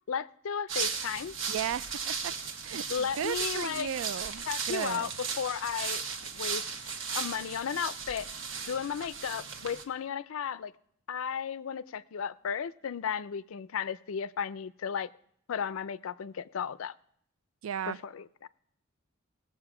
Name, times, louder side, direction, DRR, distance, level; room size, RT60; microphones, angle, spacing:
voice 1, 0.1-1.3 2.9-3.9 4.5-5.1 5.4-6.0 6.3-6.6 7.1-8.3 8.7-10.7 11.1-15.1 15.5-16.9 17.9-18.5, left 7 dB, 80° left, 17 dB, 0.4 m, -34 dB
sound 1, 0.7-9.8, right 6 dB, 65° right, 1.1 m, -36 dB
voice 2, 1.5-2.3 2.6-5.1 17.6-18.0, right 8 dB, 85° right, 18 dB, 0.4 m, -35 dB
18.0 x 7.5 x 4.9 m, 0.69 s
head